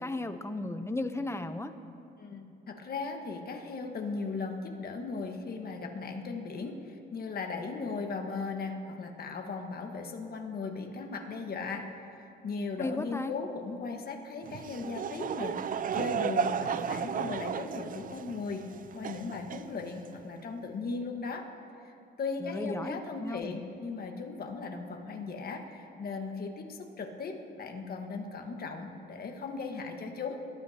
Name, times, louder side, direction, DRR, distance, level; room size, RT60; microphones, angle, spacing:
voice 1, 0.0-1.7 12.8-13.3 22.4-23.6, left 2 dB, 15° left, 9 dB, 0.8 m, -35 dB
voice 2, 2.2-11.9 12.2-15.6 15.9-18.6 18.9-21.5 21.8-30.4, left 4 dB, 50° left, 3 dB, 1.5 m, -37 dB
Laughter / Crowd, 14.4-20.2, right 7 dB, 45° right, 0.5 m, -34 dB
22.5 x 12.5 x 2.9 m, 2.6 s
cardioid pair, 90°, 20 cm